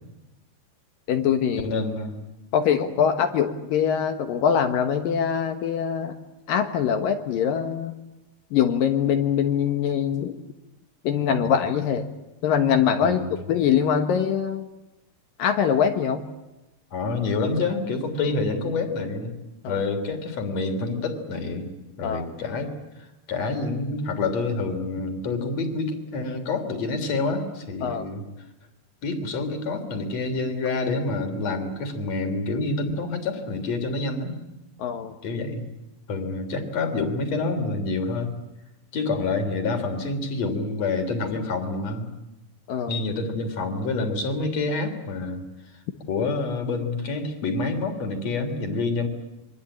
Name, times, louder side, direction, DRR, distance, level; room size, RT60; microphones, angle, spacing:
voice 1, 1.1-1.7 2.5-6.2 6.5-7.9 8.5-10.3 11.0-12.1 12.4-13.2 13.5-14.7 15.4-16.3 19.6-19.8 22.0-22.3 27.8-28.1 34.8-35.1 42.7-43.0, left 8 dB, 65° left, 7 dB, 2.8 m, -23 dB
voice 2, 1.6-2.2 13.0-13.3 16.9-19.3 19.7-21.7 22.0-28.2 29.0-34.4 35.2-35.7 36.1-38.3 38.9-42.1 42.9-45.4 46.1-49.1, left 3 dB, 45° left, 6 dB, 4.2 m, -27 dB
27.5 x 23.0 x 8.7 m, 1.0 s
omnidirectional pair, 4.5 m